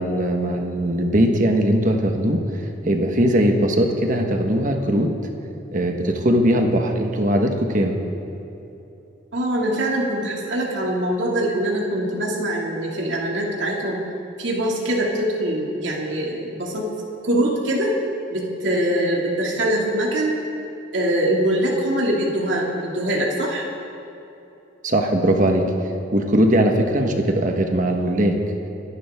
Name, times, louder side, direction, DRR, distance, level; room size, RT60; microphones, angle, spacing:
voice 1, 0.0-5.1 5.7-8.0 24.8-25.6 26.1-28.4, right 1 dB, 45° right, 3 dB, 1.4 m, -20 dB
voice 2, 9.3-14.0 14.4-16.9 17.2-17.9 18.3-20.3 20.9-23.6 27.0-27.3, right 1 dB, 70° right, -3 dB, 2.5 m, -23 dB
26.0 x 11.5 x 3.7 m, 2.9 s
head